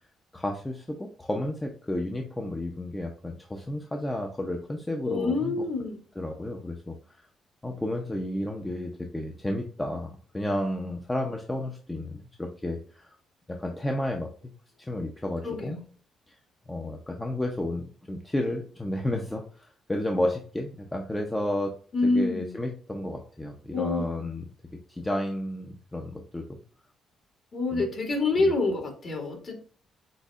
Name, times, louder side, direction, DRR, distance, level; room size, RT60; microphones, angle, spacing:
voice 1, 0.3-5.6 6.2-7.2 7.6-13.1 13.5-14.3 14.8-15.8 16.3-16.4 16.7-21.7 22.0-24.4 24.9-26.6 27.7-27.9 28.4-28.5, left 1 dB, 15° left, 2 dB, 0.7 m, -32 dB
voice 2, 5.0-6.0 15.4-15.8 21.9-22.5 23.7-24.0 27.5-29.6, left 3 dB, 45° left, 1 dB, 2.2 m, -27 dB
7.9 x 2.7 x 2.4 m, 0.43 s
cardioid pair, 90°, 0 cm